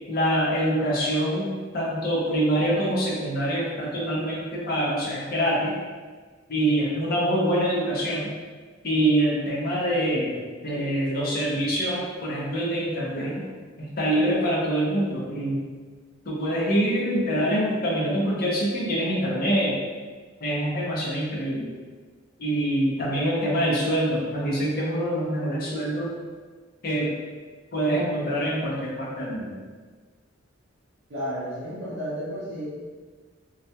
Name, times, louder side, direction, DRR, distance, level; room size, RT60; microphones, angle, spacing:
voice 1, 0.1-5.7 6.5-8.3 8.8-13.4 13.8-15.6 16.3-19.7 20.4-21.7 22.4-26.1 26.8-27.2 27.7-29.5, right 1 dB, 50° left, -5 dB, 0.6 m, -25 dB
voice 2, 31.1-32.7, equal, 60° right, -10 dB, 0.6 m, -32 dB
2.3 x 2.1 x 2.7 m, 1.5 s
head